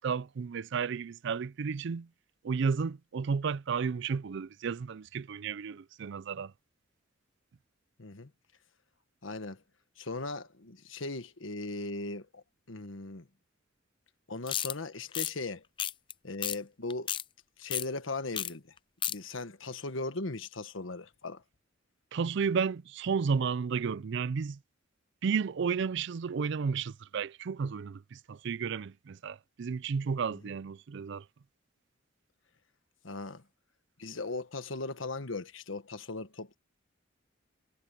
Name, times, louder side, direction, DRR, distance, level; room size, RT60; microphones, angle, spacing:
voice 1, 0.0-2.1 2.4-6.5 22.1-24.6 25.2-31.2, right 5 dB, 65° right, 0.4 m, -32 dB
voice 2, 8.0-8.3 9.2-9.6 10.0-13.3 14.3-15.6 16.2-17.1 17.6-18.7 19.1-21.4 33.0-33.4 34.0-36.6, left 3 dB, 80° left, 1.4 m, -38 dB
sound 1, 14.5-14.7 15.1-15.3 15.8-16.1 16.4-16.6 16.9-17.2 17.7-17.9 18.3-18.5 18.8-19.2, left 10 dB, 25° left, 0.4 m, -32 dB
head